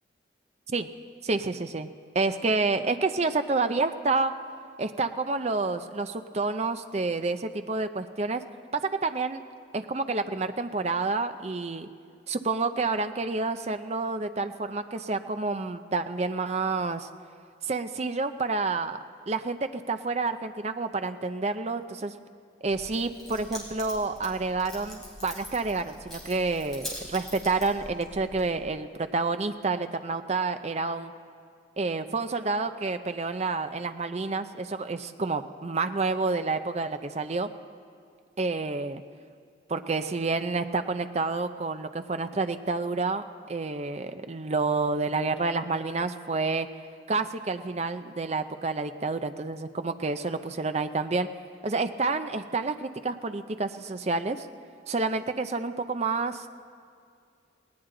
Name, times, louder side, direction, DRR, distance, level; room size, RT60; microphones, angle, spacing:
voice 1, 1.2-4.3 4.8-8.4 8.7-9.4 9.7-11.9 12.3-17.1 17.6-19.0 19.3-22.1 22.6-31.1 31.8-37.5 38.4-39.0 39.7-46.7 47.1-51.3 51.6-54.5 54.9-56.5, right 3 dB, 35° right, 9 dB, 0.5 m, -29 dB
Keys jangling, 22.6-28.7, left 1 dB, ahead, 3.4 m, -43 dB
19.0 x 18.0 x 3.9 m, 2.3 s
head